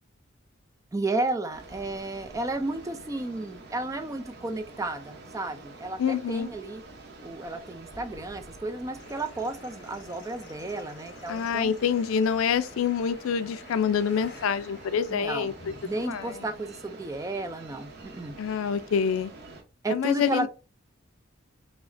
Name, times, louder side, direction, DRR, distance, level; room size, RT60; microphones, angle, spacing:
voice 1, 0.9-6.8 7.2-11.7 15.1-15.5 15.8-18.4 19.8-20.5, right 2 dB, 15° right, 0.3 m, -32 dB
sound 1, 1.5-19.6, right 3 dB, 50° right, 0.8 m, -47 dB
voice 2, 6.0-6.5 11.3-16.4 18.4-19.3 19.9-20.5, left 7 dB, 80° left, 0.4 m, -27 dB
sound 2, 9.0-16.1, left 2 dB, 55° left, 1.0 m, -49 dB
4.8 x 2.0 x 2.5 m
head